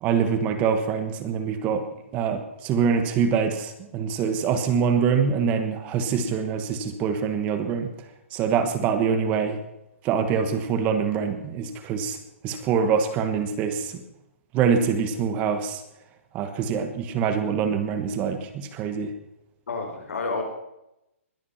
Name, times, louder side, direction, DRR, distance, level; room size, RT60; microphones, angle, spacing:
voice 1, 0.0-1.9 2.1-7.9 8.3-9.6 10.0-12.2 12.4-14.0 14.5-15.8 16.3-19.1, right 6 dB, 20° right, 8 dB, 1.2 m, -24 dB
voice 2, 19.7-20.4, left 3 dB, 90° left, 3 dB, 4.7 m, -30 dB
21.0 x 8.5 x 5.8 m, 0.87 s
hypercardioid pair, 165°, 7 cm